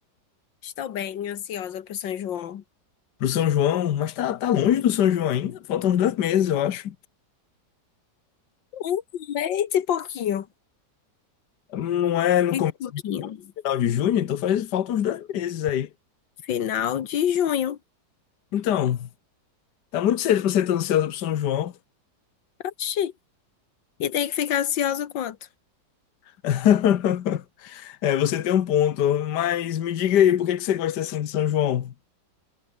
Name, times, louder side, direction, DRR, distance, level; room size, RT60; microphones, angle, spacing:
voice 1, 0.6-2.6 8.7-10.5 12.5-13.5 16.4-17.8 22.6-23.1 24.0-25.4, left 9 dB, 90° left, 1.9 m, -27 dB
voice 2, 3.2-6.9 11.7-12.7 13.6-15.9 18.5-19.1 19.9-21.7 26.4-31.9, left 10 dB, 70° left, 1.7 m, -23 dB
omnidirectional pair, 1.9 m